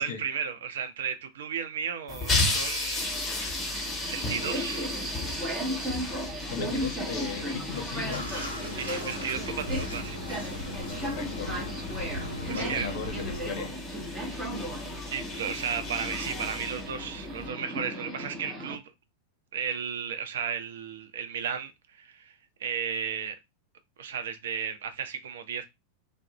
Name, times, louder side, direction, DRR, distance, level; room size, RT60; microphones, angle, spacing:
voice 1, 0.0-3.2 4.1-5.0 8.8-10.2 12.5-12.9 15.1-18.8 19.5-22.3 22.6-23.4 24.0-25.7, right 7 dB, 60° right, 0.4 m, -34 dB
sound 1, 2.1-17.5, left 3 dB, 15° left, 1.1 m, -35 dB
Subway metro underground, 3.0-18.7, equal, 15° right, 0.8 m, -36 dB
voice 2, 6.5-8.3 11.0-11.5 12.3-13.7, left 6 dB, 50° left, 0.6 m, -37 dB
Bathtub (filling or washing), 8.1-13.5, left 1 dB, 85° right, 0.7 m, -38 dB
2.4 x 2.0 x 2.8 m
figure-of-eight pair, 90°, 0 cm